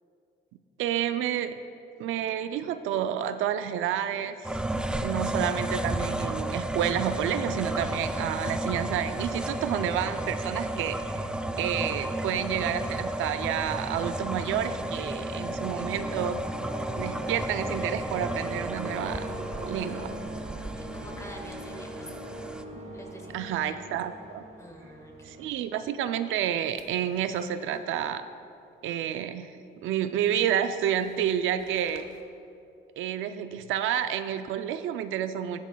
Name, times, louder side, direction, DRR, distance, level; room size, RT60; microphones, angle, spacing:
voice 1, 0.8-1.6 2.0-4.6 5.0-16.4 17.0-19.3 19.7-20.2 23.3-24.4 25.2-28.2 28.8-29.6 29.8-32.1 33.0-35.6, right 10 dB, 85° right, 10 dB, 0.5 m, -30 dB
sound 1, 4.4-22.6, right 1 dB, 5° right, 0.4 m, -33 dB
sound 2, 12.8-25.5, right 1 dB, 35° right, 1.8 m, -42 dB
sound 3, 15.2-23.3 23.7-24.0 26.3-27.8 30.5-32.2, left 4 dB, 85° left, 0.8 m, -53 dB
voice 2, 20.8-22.1 22.9-23.8 24.6-25.4, equal, 15° left, 2 dB, 1.5 m, -46 dB
13.0 x 10.5 x 2.3 m, 2.6 s
cardioid pair, 90°, 20 cm